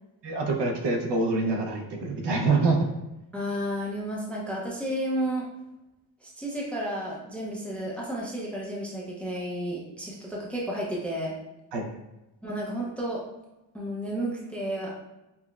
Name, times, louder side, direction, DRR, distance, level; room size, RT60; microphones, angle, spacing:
voice 1, 0.2-2.9 11.7-11.8, right 3 dB, 65° right, 1 dB, 0.6 m, -25 dB
voice 2, 3.3-5.5 6.2-11.4 12.4-13.2 13.7-15.0, equal, 5° left, -4 dB, 0.5 m, -32 dB
5.6 x 2.1 x 2.3 m, 0.96 s
wide cardioid pair, 150°, 46 cm